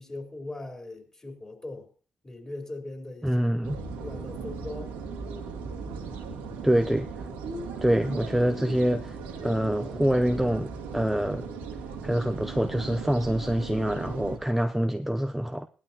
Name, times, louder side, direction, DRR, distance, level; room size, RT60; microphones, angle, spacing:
voice 1, 0.0-1.9 2.2-4.9, left 2 dB, 20° left, 3.8 m, -40 dB
voice 2, 3.2-3.8 6.6-7.3 7.8-11.5 12.0-15.7, right 1 dB, 5° right, 0.7 m, -26 dB
sound 1, 3.6-14.4, right 4 dB, 75° right, 1.8 m, -37 dB
18.5 x 12.0 x 2.9 m
hypercardioid pair, 45°, 3 cm